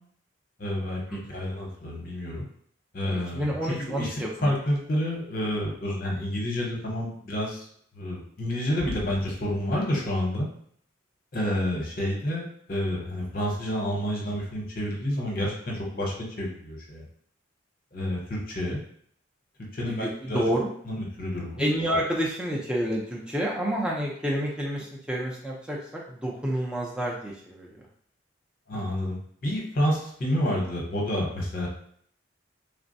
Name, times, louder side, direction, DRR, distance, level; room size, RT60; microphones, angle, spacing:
voice 1, 0.6-2.4 2.9-3.5 3.8-7.7 7.9-10.5 11.3-17.0 17.9-18.8 19.7-20.4 20.9-21.7 28.7-31.7, equal, 45° left, -1 dB, 0.7 m, -29 dB
voice 2, 3.0-4.5 19.9-20.7 21.6-27.8, equal, 5° right, -4 dB, 0.4 m, -29 dB
3.3 x 2.1 x 2.6 m, 0.62 s
head